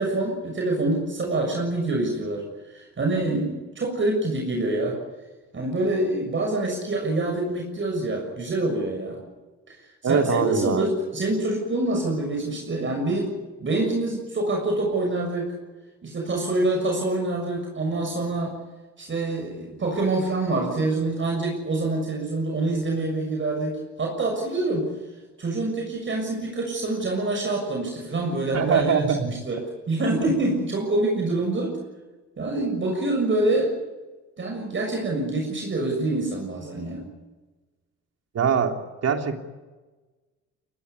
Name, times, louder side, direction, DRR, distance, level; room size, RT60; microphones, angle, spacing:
voice 1, 0.0-2.4 2.7-5.0 5.5-9.2 10.0-13.3 13.6-15.4 16.0-18.5 19.0-24.8 25.4-29.6 29.9-31.7 32.4-33.7 34.4-37.0, right 2 dB, 40° right, 1 dB, 6.7 m, -26 dB
voice 2, 10.0-10.8 28.5-29.3 38.3-38.7 39.0-39.4, right 6 dB, 55° right, 4 dB, 3.3 m, -22 dB
23.0 x 19.5 x 9.8 m, 1.2 s
cardioid pair, 90°, 30 cm